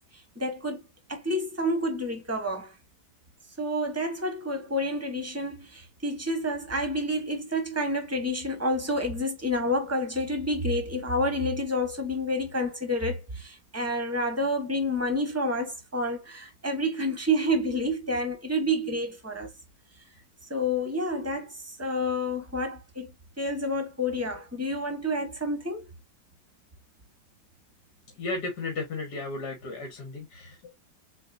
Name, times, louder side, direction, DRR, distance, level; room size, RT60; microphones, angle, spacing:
voice 1, 0.3-0.8 1.1-2.7 3.6-19.5 20.5-25.9, equal, 10° right, 1.0 m, -29 dB
voice 2, 28.2-30.7, left 3 dB, 65° left, 1.9 m, -34 dB
7.2 x 2.8 x 2.5 m
omnidirectional pair, 2.0 m